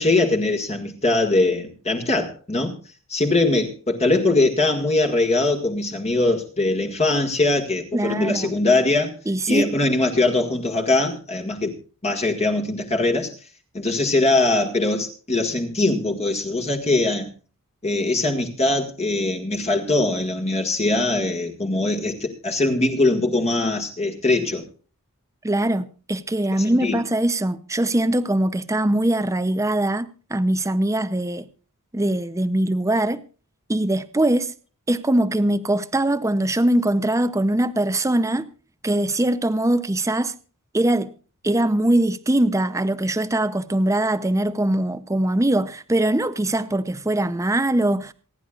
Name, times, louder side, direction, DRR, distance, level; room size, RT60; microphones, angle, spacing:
voice 1, 0.0-2.8 3.1-9.2 9.5-11.8 12.0-13.3 13.7-17.3 17.8-24.6 26.6-27.0, left 2 dB, 30° left, 1.8 m, -21 dB
voice 2, 7.9-8.5 9.3-9.7 25.4-31.5 31.9-33.2 33.7-34.5 34.9-38.5 38.8-40.3 40.7-41.1 41.4-48.1, right 1 dB, 15° right, 0.6 m, -22 dB
27.5 x 10.5 x 2.4 m
head